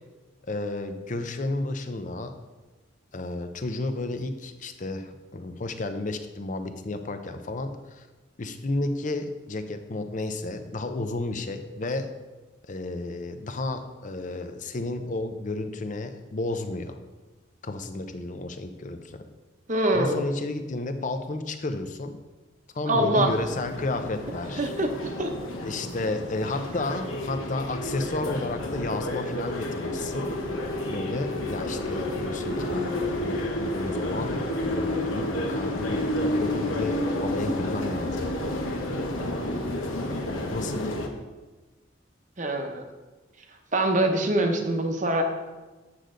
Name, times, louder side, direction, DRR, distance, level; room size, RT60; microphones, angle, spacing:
voice 1, 0.5-2.4 3.1-8.1 8.4-12.1 12.7-17.0 17.6-19.3 19.9-22.2 22.7-24.7 25.6-30.3 30.9-38.3 39.2-39.9 40.5-40.9, left 2 dB, 35° left, 8 dB, 0.5 m, -32 dB
voice 2, 19.7-20.2 22.8-23.3 24.6-24.9 25.2-25.3 42.4-42.8 43.7-45.2, right 1 dB, 35° right, 4 dB, 0.8 m, -24 dB
sound 1, 23.3-41.1, left 1 dB, 80° left, 1.0 m, -30 dB
8.4 x 6.6 x 3.8 m, 1.2 s
head